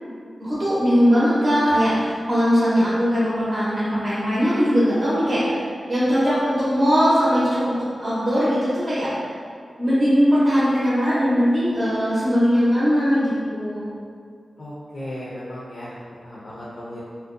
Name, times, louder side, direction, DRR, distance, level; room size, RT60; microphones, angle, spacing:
voice 1, 0.4-5.6 5.9-9.1 9.8-13.8, equal, 55° right, -10 dB, 0.6 m, -20 dB
voice 2, 14.6-17.0, left 1 dB, 65° left, -7 dB, 0.4 m, -36 dB
2.5 x 2.1 x 2.5 m, 2.2 s
cardioid pair, 45°, 0 cm